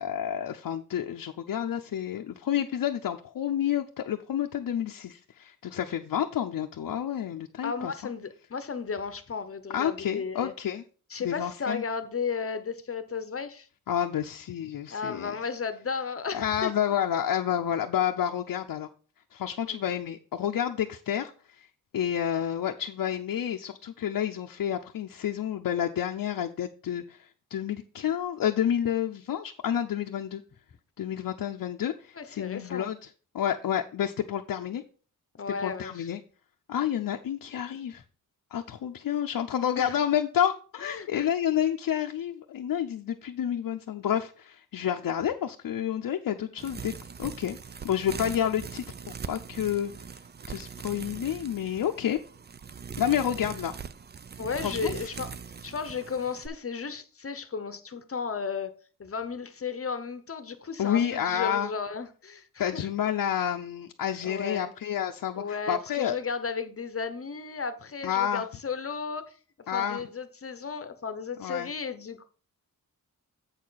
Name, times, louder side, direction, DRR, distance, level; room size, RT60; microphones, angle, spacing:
voice 1, 0.0-7.9 9.7-10.8 11.2-11.8 13.9-15.3 16.3-18.9 19.3-21.6 21.9-30.4 31.0-33.1 33.3-34.8 35.6-36.2 36.7-38.0 38.5-46.9 47.2-47.6 47.8-49.9 50.5-52.2 53.0-53.7 54.6-54.9 60.8-61.7 62.6-66.1 68.0-68.4 69.7-70.0 71.4-71.7, left 10 dB, 85° left, 0.7 m, -29 dB
voice 2, 7.6-10.5 11.1-13.7 14.9-16.7 19.6-19.8 32.2-32.9 35.3-36.1 39.8-40.0 40.9-41.3 54.4-55.3 55.6-58.7 59.0-62.9 64.2-64.7 65.4-69.3 69.7-72.2, left 5 dB, 40° left, 0.8 m, -34 dB
sound 1, 46.6-56.5, right 6 dB, 30° right, 0.4 m, -41 dB
8.0 x 6.6 x 4.0 m
wide cardioid pair, 120°, 33 cm